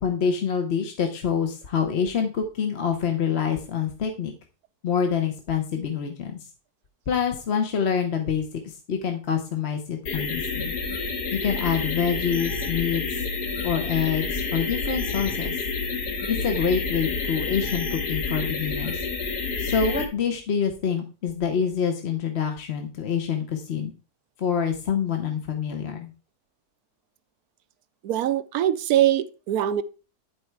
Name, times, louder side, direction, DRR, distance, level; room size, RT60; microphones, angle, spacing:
voice 1, 0.0-4.3 4.8-6.4 7.1-10.7 11.3-13.2 13.6-15.6 16.3-19.0 19.6-23.9 24.4-26.1, left 7 dB, 45° left, 1.0 m, -26 dB
sound 1, 10.1-20.1, left 4 dB, 75° left, 1.9 m, -29 dB
voice 2, 28.0-29.8, right 11 dB, 70° right, 1.0 m, -22 dB
11.0 x 4.3 x 4.6 m
omnidirectional pair, 1.7 m